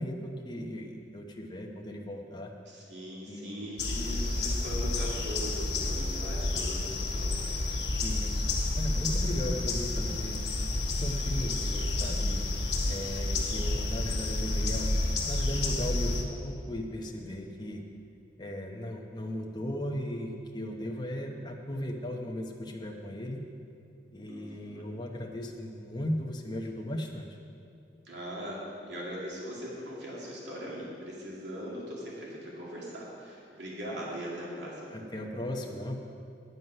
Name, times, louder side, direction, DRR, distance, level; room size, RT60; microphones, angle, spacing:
voice 1, 0.0-2.5 3.3-3.6 8.0-10.4 11.0-12.5 12.9-14.9 15.3-17.8 18.4-23.4 24.1-27.4 34.9-36.0, equal, 25° left, 1 dB, 0.9 m, -37 dB
voice 2, 2.6-7.4 12.8-13.0 13.2-13.5 24.3-24.9 28.0-28.6 28.9-34.9, equal, 80° right, -5 dB, 2.3 m, -40 dB
sound 1, 3.8-16.2, left 2 dB, 70° left, 1.3 m, -30 dB
9.5 x 9.3 x 5.5 m, 2.5 s
head